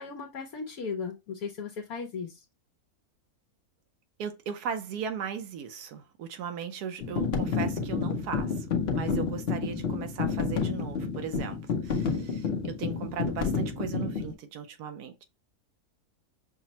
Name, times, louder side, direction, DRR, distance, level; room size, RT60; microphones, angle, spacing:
voice 1, 0.0-2.4, left 5 dB, 70° left, 1.1 m, -36 dB
voice 2, 4.2-8.7 8.9-15.2, right 7 dB, 85° right, 1.2 m, -37 dB
sound 1, 7.0-14.3, left 5 dB, 55° left, 0.8 m, -30 dB
6.0 x 2.1 x 2.7 m
omnidirectional pair, 1.6 m